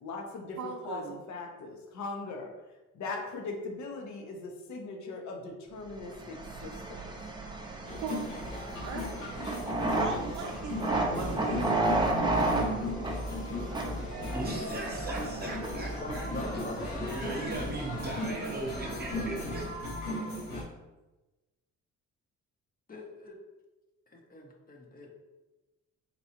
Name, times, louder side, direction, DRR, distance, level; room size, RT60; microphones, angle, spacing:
voice 1, 0.0-2.5 2.9-6.4 6.6-7.0 12.3-12.6 14.6-14.7, left 3 dB, 65° left, 2 dB, 0.7 m, -40 dB
voice 2, 0.6-1.2 7.9-8.3 8.8-9.2 10.0-10.8 11.1-11.7, right 6 dB, 65° right, 2 dB, 0.5 m, -39 dB
sound 1, 6.0-19.9, right 2 dB, 15° right, 0.5 m, -34 dB
sound 2, 7.9-20.6, left 1 dB, 85° left, 1.5 m, -36 dB
voice 3, 14.3-16.3 16.9-19.7, right 2 dB, 35° right, -1 dB, 0.9 m, -38 dB
voice 4, 15.8-17.0 22.9-23.4 24.1-25.1, left 2 dB, 30° left, 0 dB, 0.7 m, -43 dB
4.1 x 2.3 x 2.8 m, 1.1 s
cardioid pair, 90°, 30 cm